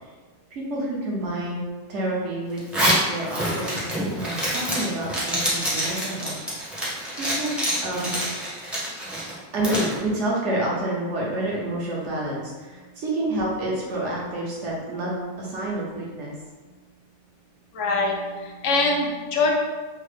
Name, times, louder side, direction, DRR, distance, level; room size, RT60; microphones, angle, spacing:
voice 1, 0.5-1.6 1.9-3.8 4.1-6.3 7.2-8.1 9.5-15.1 15.4-16.3, right 1 dB, 70° right, -4 dB, 1.1 m, -28 dB
Zipper (clothing), 2.6-9.9, equal, ahead, 0.6 m, -26 dB
voice 2, 17.7-19.5, left 3 dB, 75° left, -1 dB, 0.9 m, -23 dB
3.5 x 2.2 x 3.3 m, 1.3 s
omnidirectional pair, 1.3 m